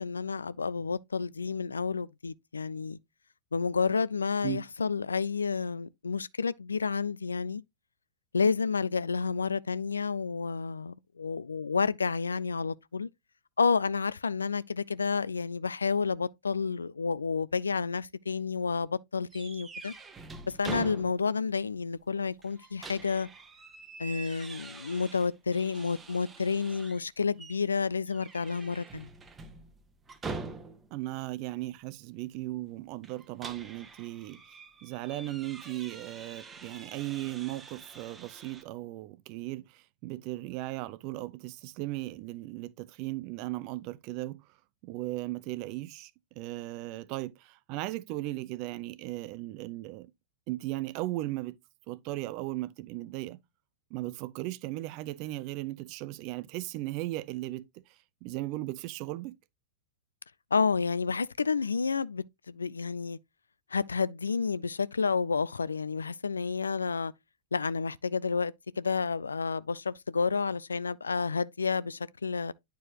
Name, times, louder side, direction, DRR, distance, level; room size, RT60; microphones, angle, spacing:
voice 1, 0.0-3.0 3.5-7.6 8.3-13.1 13.6-19.9 20.6-23.3 24.0-29.1 60.5-63.2 63.7-67.1 67.5-72.5, left 5 dB, 85° left, 0.3 m, -30 dB
sound 1, 19.3-21.5 21.8-21.9 22.4-27.0 27.4-27.7 28.1-31.0 33.0-38.6, right 4 dB, 20° right, 0.9 m, -45 dB
voice 2, 30.9-34.4 34.8-44.4 44.8-46.1 46.4-50.1 50.5-51.6 51.9-53.4 53.9-57.7 58.2-59.3, right 17 dB, 45° right, 0.5 m, -37 dB
9.2 x 4.6 x 2.9 m
figure-of-eight pair, 100°, 0 cm